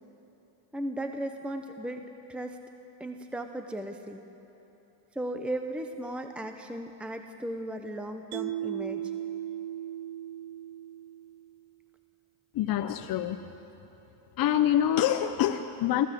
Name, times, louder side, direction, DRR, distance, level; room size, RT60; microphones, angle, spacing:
voice 1, 0.7-2.6 3.0-4.2 5.1-9.1, right 1 dB, ahead, 5 dB, 1.0 m, -36 dB
Mallet percussion, 8.3-11.6, right 11 dB, 75° right, 0.9 m, -36 dB
voice 2, 12.5-13.4 14.4-16.1, left 11 dB, 45° left, 6 dB, 0.9 m, -26 dB
23.5 x 16.5 x 7.7 m, 3.0 s
cardioid pair, 110°, 49 cm